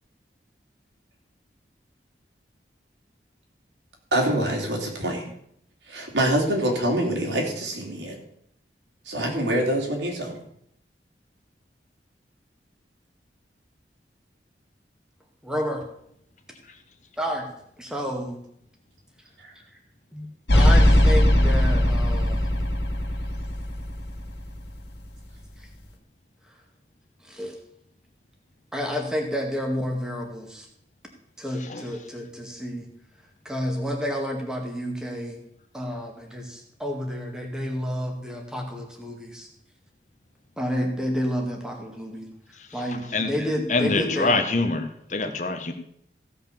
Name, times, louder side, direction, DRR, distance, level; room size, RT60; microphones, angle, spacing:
voice 1, 4.1-5.3 5.9-8.2 9.1-10.4 19.4-19.5, right 1 dB, 90° right, 0 dB, 3.6 m, -25 dB
voice 2, 15.4-15.8 17.2-17.5 17.8-18.4 20.1-20.3 20.5-22.5 27.2-27.5 28.7-30.7 31.4-32.9 33.5-35.4 35.7-39.5 40.6-42.3 42.7-44.4, equal, 5° right, 1 dB, 2.0 m, -30 dB
sound 1, 20.5-24.8, left 1 dB, 75° left, 2.6 m, -20 dB
voice 3, 43.7-45.7, left 3 dB, 45° left, 6 dB, 1.3 m, -25 dB
16.0 x 5.8 x 7.0 m, 0.72 s
head